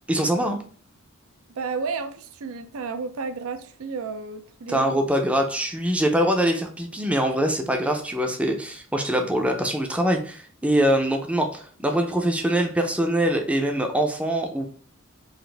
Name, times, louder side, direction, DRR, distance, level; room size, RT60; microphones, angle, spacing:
voice 1, 0.1-0.6 4.7-14.7, right 1 dB, 5° right, 0.5 m, -23 dB
voice 2, 1.5-5.0, right 4 dB, 70° right, 0.5 m, -32 dB
4.0 x 2.5 x 3.2 m
head